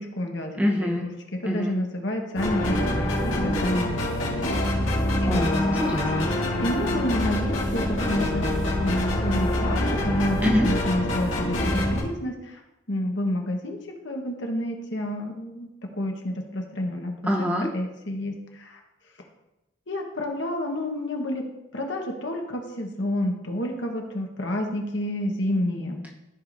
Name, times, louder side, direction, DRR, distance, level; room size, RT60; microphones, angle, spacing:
voice 1, 0.0-3.9 4.4-5.8 6.6-8.6 8.8-12.6 12.9-17.1 17.7-18.8 19.9-26.0, left 1 dB, 65° left, 2 dB, 1.2 m, -30 dB
voice 2, 0.6-1.1 1.4-1.8 5.2-6.3 10.4-10.7 17.2-17.7, left 1 dB, 10° right, -1 dB, 0.9 m, -25 dB
sound 1, 2.4-12.0, left 1 dB, 85° left, 1.9 m, -25 dB
14.0 x 5.0 x 2.6 m, 0.96 s
head